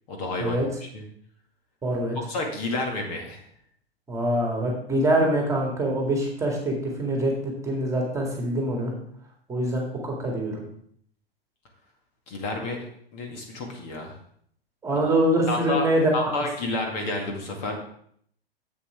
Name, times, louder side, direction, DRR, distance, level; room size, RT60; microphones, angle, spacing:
voice 1, 0.1-1.0 2.2-3.4 12.3-12.8 13.1-14.1 15.1-15.2 15.5-17.8, left 2 dB, 40° left, 2 dB, 2.1 m, -30 dB
voice 2, 1.8-2.2 4.1-6.7 7.0-8.9 9.5-10.6 14.8-16.3, right 1 dB, 10° right, 0 dB, 2.1 m, -24 dB
11.0 x 8.1 x 3.5 m, 0.65 s
figure-of-eight pair, 105°, 31 cm